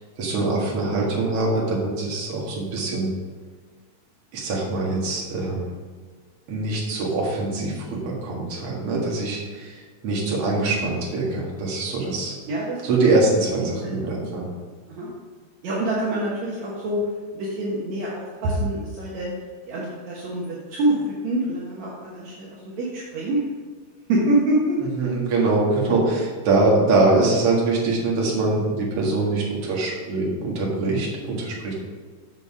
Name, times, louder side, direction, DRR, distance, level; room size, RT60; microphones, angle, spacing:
voice 1, 0.2-3.1 4.3-5.7 6.5-12.3 12.8-14.5 25.0-31.7, right 2 dB, 50° right, -3 dB, 2.6 m, -23 dB
voice 2, 15.6-17.0 17.3-19.3 19.7-23.4 24.1-24.8, right 1 dB, 65° right, -5 dB, 2.4 m, -25 dB
8.0 x 6.6 x 4.9 m, 1.5 s
omnidirectional pair, 3.6 m